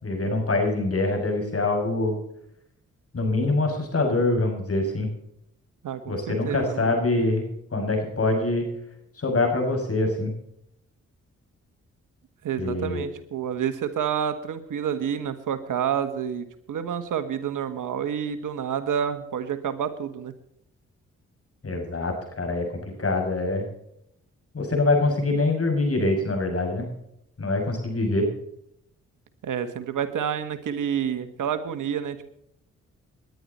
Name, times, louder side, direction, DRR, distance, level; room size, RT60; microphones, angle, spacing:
voice 1, 0.0-2.2 3.1-5.1 6.1-8.7 9.2-10.3 12.6-13.1 21.6-22.7 23.0-23.6 24.5-26.9 27.4-28.3, left 2 dB, 45° left, 3 dB, 7.0 m, -24 dB
voice 2, 5.8-7.0 12.4-20.3 29.4-32.3, right 8 dB, 70° right, 11 dB, 1.5 m, -29 dB
20.0 x 11.0 x 4.2 m, 0.76 s
supercardioid pair, 45°, 32 cm